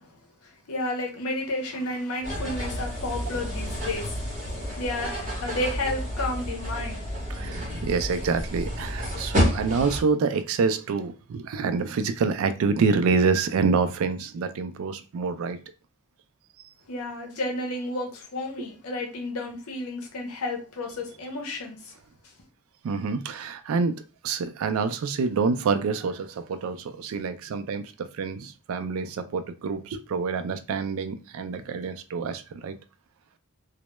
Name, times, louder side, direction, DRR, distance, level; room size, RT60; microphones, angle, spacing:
voice 1, 0.4-7.0 16.9-22.0, left 2 dB, 85° left, 0.6 m, -32 dB
sound 1, 2.2-10.0, equal, 35° right, 0.8 m, -30 dB
voice 2, 7.3-15.6 22.8-32.7, right 5 dB, 70° right, 0.3 m, -27 dB
2.1 x 2.0 x 2.9 m
head